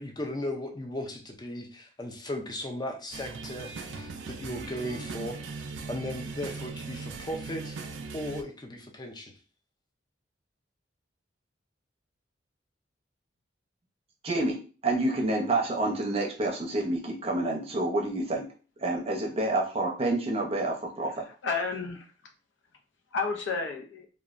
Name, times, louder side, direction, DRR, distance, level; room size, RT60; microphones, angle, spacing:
voice 1, 0.0-7.8 8.1-9.3, left 1 dB, 20° left, 2 dB, 0.5 m, -37 dB
sound 1, 3.1-8.4, right 4 dB, 75° right, 0.4 m, -39 dB
voice 2, 14.2-14.6 14.8-18.5 18.8-21.1, right 2 dB, 30° right, 0 dB, 0.6 m, -28 dB
voice 3, 21.1-22.1 23.1-24.1, left 4 dB, 75° left, 3 dB, 0.6 m, -32 dB
3.1 x 2.2 x 2.4 m, 0.37 s
head